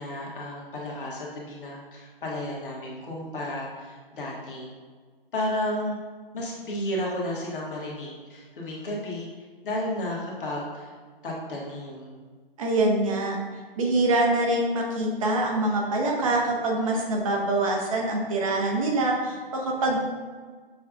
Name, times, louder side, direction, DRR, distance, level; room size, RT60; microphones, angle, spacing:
voice 1, 0.0-4.7 5.3-6.0 6.3-9.3 9.6-10.9 11.2-12.1, left 1 dB, 60° left, -3 dB, 1.2 m, -32 dB
voice 2, 12.6-13.4 13.8-20.0, right 2 dB, 35° right, 0 dB, 0.7 m, -24 dB
6.5 x 2.3 x 2.5 m, 1.5 s
figure-of-eight pair, 135°, 29 cm